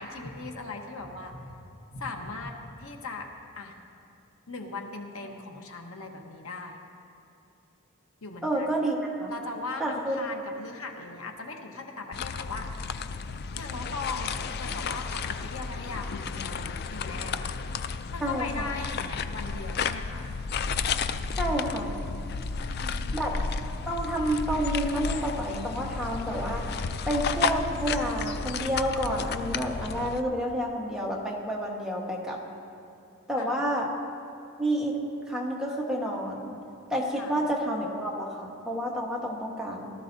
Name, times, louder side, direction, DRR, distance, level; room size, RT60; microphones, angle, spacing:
voice 1, 0.0-1.6 1.9-3.3 3.5-3.7 4.5-6.8 8.2-8.7 9.3-12.7 13.6-17.5 18.1-20.3 22.5-23.2 33.4-33.6 37.2-37.4, left 3 dB, 75° left, 2 dB, 1.1 m, -39 dB
voice 2, 8.4-9.3 9.8-10.2 18.2-18.7 21.4-21.9 23.1-23.4 23.9-26.6 27.1-32.4 33.3-33.9 34.6-35.0 35.3-36.5 36.9-39.9, right 1 dB, 5° right, -3 dB, 1.2 m, -29 dB
pas sur galet, 12.1-30.2, left 5 dB, 45° left, 0.3 m, -32 dB
18.0 x 13.0 x 2.7 m, 2.8 s
head